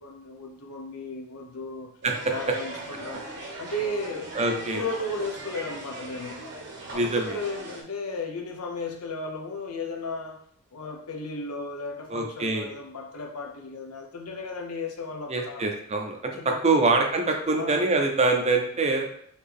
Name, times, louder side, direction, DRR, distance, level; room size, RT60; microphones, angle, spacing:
voice 1, 0.0-1.9 2.3-3.2 3.6-6.4 6.9-10.4 10.7-15.6 16.4-16.9 17.5-17.8, left 2 dB, 85° left, 2 dB, 0.8 m, -35 dB
sound 1, 2.0-7.8, right 2 dB, 55° right, 1.0 m, -39 dB
voice 2, 4.3-4.8 6.9-7.4 12.1-12.7 15.3-16.2 16.6-19.1, right 3 dB, 30° right, 2 dB, 0.6 m, -24 dB
4.1 x 2.9 x 3.5 m, 0.65 s
head